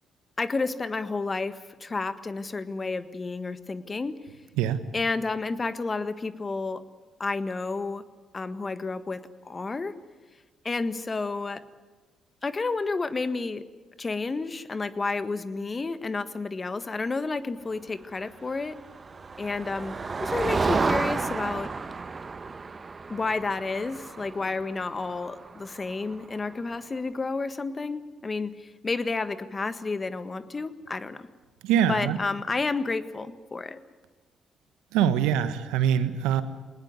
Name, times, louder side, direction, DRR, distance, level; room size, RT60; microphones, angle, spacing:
voice 1, 0.4-4.1 4.9-6.8 7.2-8.0 8.3-9.9 10.6-11.6 12.4-13.6 14.0-18.8 19.4-19.9 20.2-21.7 23.1-28.5 28.8-31.3 31.9-33.8, left 3 dB, 35° left, 12 dB, 1.5 m, -30 dB
Motor vehicle (road), 18.6-26.4, right 4 dB, 35° right, 1.2 m, -32 dB
voice 2, 31.6-32.2 34.9-36.4, right 9 dB, 80° right, 12 dB, 1.3 m, -23 dB
20.5 x 19.5 x 9.5 m, 1.3 s
hypercardioid pair, 50°, 0 cm